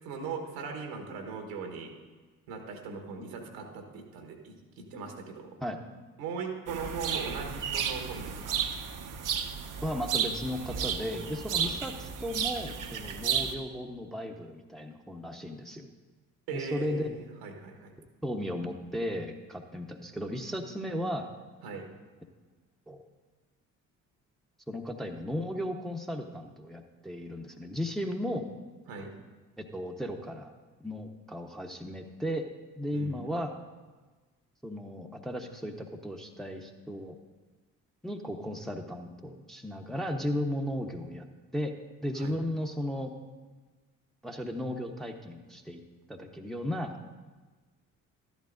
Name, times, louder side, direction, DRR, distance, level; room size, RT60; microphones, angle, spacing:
voice 1, 0.0-1.9 2.5-5.6 6.2-8.6 11.5-11.7 16.5-17.9 21.6-21.8 28.9-29.1 32.9-33.3 42.2-42.3, right 5 dB, 75° right, 4 dB, 1.5 m, -39 dB
sound 1, 6.7-13.5, right 7 dB, 45° right, 0.9 m, -33 dB
voice 2, 9.8-15.9 16.5-17.2 18.2-21.3 22.9-23.0 24.7-28.4 29.7-30.5 30.8-32.5 32.8-33.5 34.6-37.2 38.0-41.3 41.5-41.7 42.0-43.1 44.2-45.8 46.1-46.9, equal, ahead, 3 dB, 1.0 m, -35 dB
12.5 x 10.5 x 2.6 m, 1.3 s
figure-of-eight pair, 40°, 43 cm